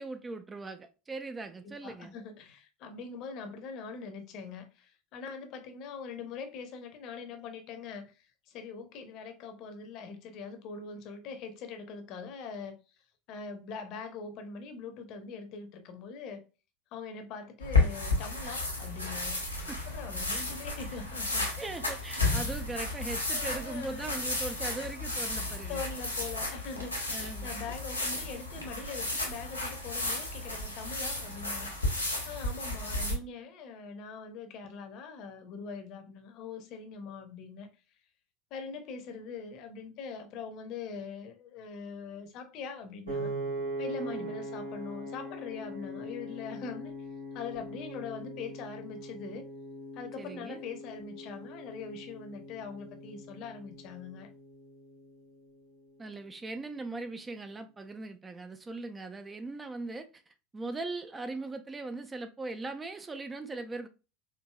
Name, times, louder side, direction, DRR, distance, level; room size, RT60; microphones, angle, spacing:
voice 1, 0.0-2.1 19.7-19.8 20.3-20.4 21.6-25.8 27.1-27.5 44.0-44.3 50.2-50.6 56.0-63.9, right 3 dB, 15° right, 0.3 m, -40 dB
voice 2, 1.6-12.8 13.3-16.4 16.9-21.5 23.3-24.3 25.7-31.7 32.2-37.7 38.5-43.3 43.8-46.9 47.3-49.5 49.9-54.3, left 5 dB, 45° left, 0.7 m, -42 dB
sound 1, 17.6-33.1, left 2 dB, 85° left, 1.0 m, -33 dB
Piano, 43.1-55.3, equal, 75° right, 1.7 m, -41 dB
4.5 x 2.6 x 2.3 m
figure-of-eight pair, 75°, 0 cm